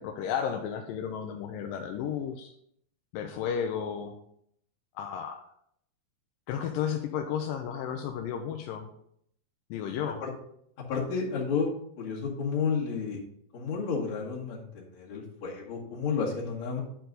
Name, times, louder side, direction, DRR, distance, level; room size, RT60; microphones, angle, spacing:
voice 1, 0.0-2.5 3.1-4.1 5.0-5.4 6.5-8.9 9.7-10.2, left 8 dB, 80° left, 4 dB, 2.1 m, -33 dB
voice 2, 10.9-11.7 12.0-13.2 13.5-16.8, left 5 dB, 50° left, -4 dB, 3.0 m, -31 dB
10.0 x 4.6 x 3.9 m, 0.70 s
omnidirectional pair, 4.4 m